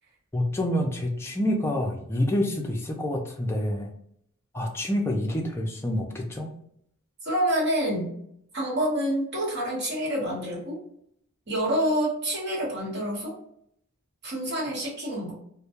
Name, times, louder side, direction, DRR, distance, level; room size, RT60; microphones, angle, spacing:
voice 1, 0.3-3.9 4.5-6.5, left 1 dB, 10° left, 1 dB, 0.3 m, -27 dB
voice 2, 7.2-8.1 8.5-10.8 11.5-13.3 14.2-15.3, equal, 50° right, -5 dB, 1.1 m, -27 dB
2.2 x 2.1 x 2.9 m, 0.70 s
head